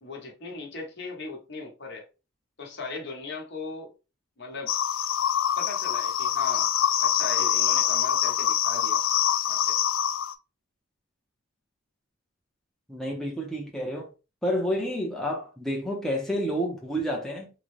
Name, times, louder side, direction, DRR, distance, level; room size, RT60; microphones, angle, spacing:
voice 1, 0.0-2.1 2.6-3.9 4.4-4.7 5.6-6.7 7.0-9.0 9.5-9.8, left 3 dB, 55° left, 1.0 m, -38 dB
sound 1, 4.7-10.3, left 10 dB, 75° left, 0.3 m, -25 dB
voice 2, 12.9-14.1 14.4-17.5, equal, ahead, 0.6 m, -29 dB
3.7 x 2.1 x 3.1 m
head